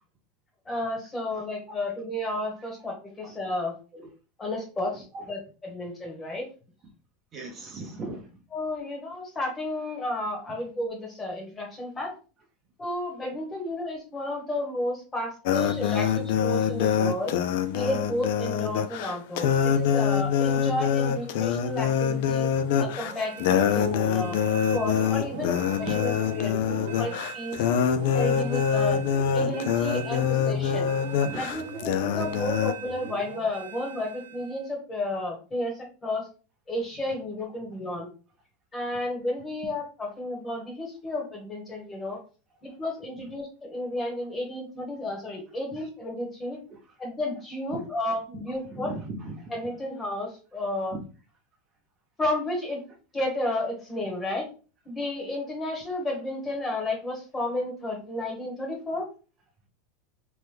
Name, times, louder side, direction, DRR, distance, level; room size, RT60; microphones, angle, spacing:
voice 1, 0.7-3.7 4.4-6.5 8.5-12.1 12.8-17.3 17.7-22.5 22.8-24.4 24.7-27.6 28.1-30.9 31.3-36.2 36.7-38.1 38.7-42.2 42.6-46.6 47.0-48.9 49.5-51.0 52.2-52.8 53.1-54.5 54.8-59.1, left 1 dB, 15° left, 1 dB, 1.2 m, -32 dB
voice 2, 7.3-8.2 25.3-25.4 25.8-25.9 31.2-31.4 47.7-47.8 48.7-49.5, right 3 dB, 30° right, 1 dB, 0.6 m, -37 dB
sound 1, 15.4-32.7, left 8 dB, 65° left, 0.4 m, -25 dB
sound 2, 22.5-34.7, right 5 dB, 80° right, 0.8 m, -39 dB
3.0 x 2.2 x 3.3 m, 0.36 s
supercardioid pair, 135°, 0 cm